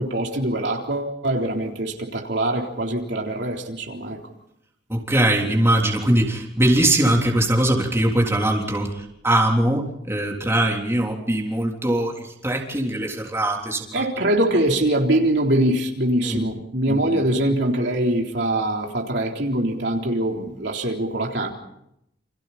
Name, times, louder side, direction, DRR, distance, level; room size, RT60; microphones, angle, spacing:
voice 1, 0.0-4.2 13.9-21.5, right 1 dB, 65° right, 1 dB, 3.7 m, -23 dB
voice 2, 4.9-14.1 16.3-16.5 16.9-17.2, right 1 dB, 15° right, -1 dB, 3.6 m, -21 dB
29.5 x 27.5 x 4.3 m, 0.78 s
head